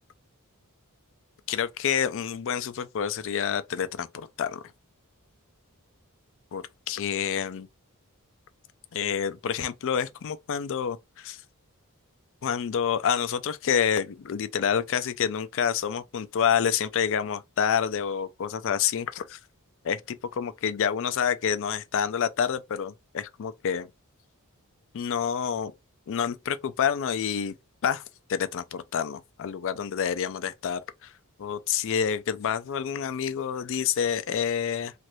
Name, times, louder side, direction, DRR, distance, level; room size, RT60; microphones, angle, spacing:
voice 1, 1.5-4.6 6.5-7.7 8.9-11.4 12.4-19.4 19.8-23.9 24.9-25.7 26.1-27.6 27.8-28.0 28.3-31.1 31.4-34.9, left 8 dB, 60° left, 0.4 m, -28 dB
3.1 x 2.5 x 3.0 m
head